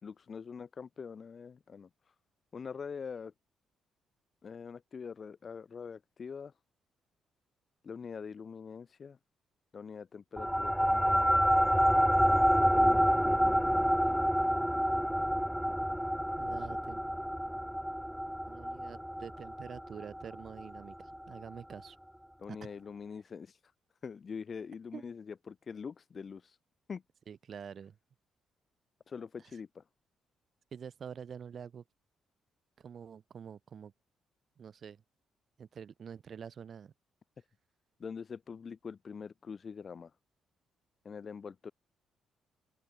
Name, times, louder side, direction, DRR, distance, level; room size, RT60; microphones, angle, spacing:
voice 1, 0.0-2.1 2.5-3.3 4.4-6.5 7.8-9.2 9.7-11.6 12.7-14.3 16.4-16.8 22.4-23.6 24.0-26.6 26.9-27.0 29.1-29.8 38.0-40.1 41.0-41.7, left 6 dB, 45° left, 4.9 m, -44 dB
sound 1, 10.4-21.2, equal, ahead, 1.3 m, -28 dB
voice 2, 16.4-17.0 18.5-22.0 22.6-22.7 24.9-25.0 27.3-28.0 30.7-31.8 32.8-33.9 34.6-35.0 35.6-36.9, right 7 dB, 50° right, 7.4 m, -46 dB
open air
cardioid pair, 90°, 0 cm